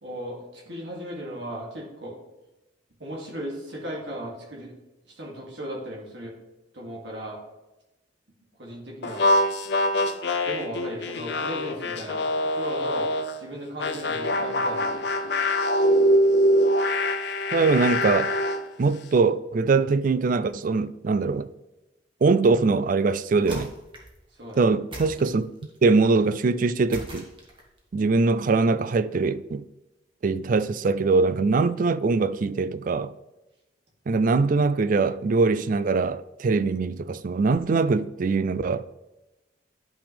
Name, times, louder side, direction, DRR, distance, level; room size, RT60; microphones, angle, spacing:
voice 1, 0.0-2.1 3.0-4.7 5.2-6.3 6.7-7.4 8.6-9.2 10.4-13.1 13.4-15.3 24.4-24.6, equal, 65° right, 2.5 m, -36 dB
sound 1, 9.0-13.4 13.8-18.6, equal, 65° left, 0.6 m, -24 dB
voice 2, 17.5-18.3 18.8-21.5 22.2-23.7 24.6-25.5 25.8-27.3 27.9-29.6 30.2-33.1 34.1-38.8, right 4 dB, 45° right, 0.4 m, -22 dB
sound 2, 23.4-24.2 24.9-25.8 26.9-27.8, right 1 dB, 25° right, 1.7 m, -40 dB
11.5 x 5.9 x 3.4 m
head